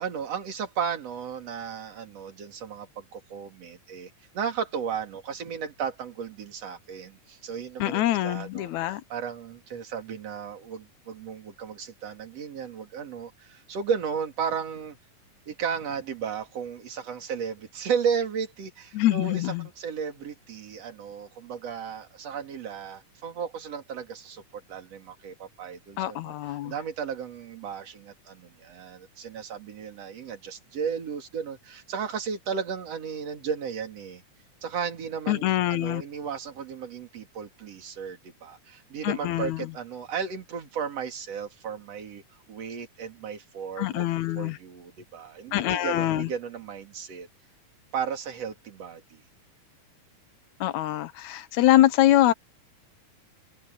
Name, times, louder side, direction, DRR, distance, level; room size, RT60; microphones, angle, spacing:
voice 1, 0.0-15.0 15.5-24.4 24.7-26.3 26.6-34.2 34.6-42.2 42.5-44.0 44.4-47.3 47.9-49.2, right 7 dB, 50° right, 3.7 m, -34 dB
voice 2, 7.8-9.0 18.9-19.7 26.0-26.7 35.3-36.0 39.0-39.7 43.8-44.6 45.5-46.3 50.6-52.3, left 14 dB, 75° left, 1.9 m, -24 dB
omnidirectional pair, 3.9 m